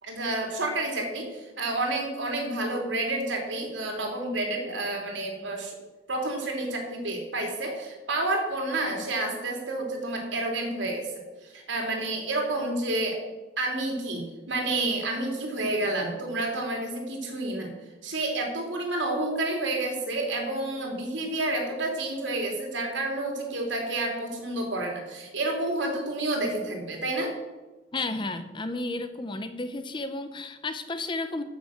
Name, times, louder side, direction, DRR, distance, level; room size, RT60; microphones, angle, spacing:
voice 1, 0.0-5.7 6.1-11.1 11.4-13.2 13.6-17.7 18.0-27.3, right 2 dB, 75° right, 1 dB, 3.0 m, -29 dB
voice 2, 27.9-31.4, left 2 dB, 25° left, 9 dB, 0.7 m, -32 dB
14.0 x 6.4 x 6.5 m, 1.2 s
head